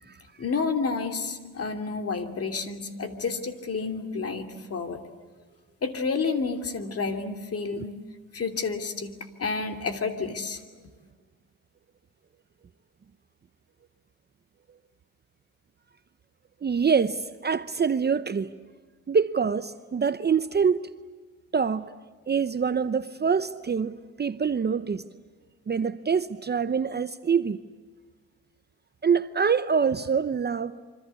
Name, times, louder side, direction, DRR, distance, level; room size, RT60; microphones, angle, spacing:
voice 1, 0.4-5.0 5.8-7.9 8.3-9.1 9.4-10.6, left 4 dB, 40° left, 3.0 m, -30 dB
voice 2, 16.6-18.5 19.1-20.8 21.5-21.9 22.3-25.0 25.7-27.6 29.0-30.7, right 6 dB, 30° right, 0.8 m, -25 dB
26.5 x 25.5 x 8.3 m
cardioid pair, 110°, 36 cm